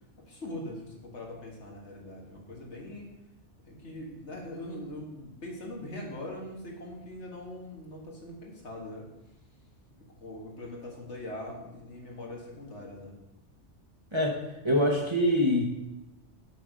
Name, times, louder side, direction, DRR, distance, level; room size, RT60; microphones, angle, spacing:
voice 1, 0.3-3.1 3.7-9.1 10.2-13.2, left 1 dB, 70° left, -2 dB, 1.9 m, -41 dB
voice 2, 14.6-15.7, left 1 dB, 25° right, 0 dB, 0.9 m, -24 dB
6.8 x 6.1 x 5.2 m, 0.95 s
omnidirectional pair, 1.2 m